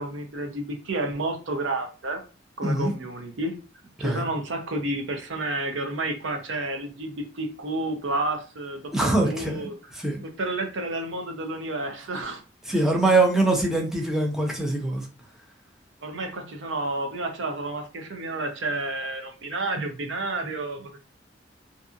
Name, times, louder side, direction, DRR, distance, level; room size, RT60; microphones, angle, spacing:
voice 1, 0.0-2.2 2.6-3.6 4.0-9.7 10.4-12.4 16.0-21.0, right 2 dB, 80° right, 5 dB, 0.6 m, -30 dB
voice 2, 8.9-9.7 9.9-10.2 12.7-15.1, right 2 dB, ahead, 0 dB, 0.5 m, -23 dB
2.6 x 2.4 x 2.5 m, 0.35 s
head